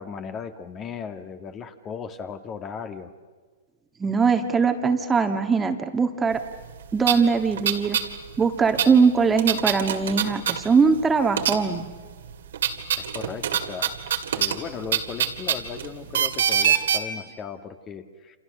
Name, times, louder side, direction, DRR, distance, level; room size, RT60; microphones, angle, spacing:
voice 1, 0.0-3.1 13.0-18.4, left 6 dB, 25° left, 8 dB, 1.8 m, -37 dB
voice 2, 4.0-6.4 6.9-8.0 8.4-11.8, right 5 dB, 15° right, 6 dB, 1.7 m, -21 dB
sound 1, 6.6-6.7 7.0-8.1 8.3-11.0 11.3-11.9 12.3-17.0, right 9 dB, 70° right, 2.3 m, -25 dB
28.5 x 28.0 x 6.6 m, 1.5 s
hypercardioid pair, 120°, 0 cm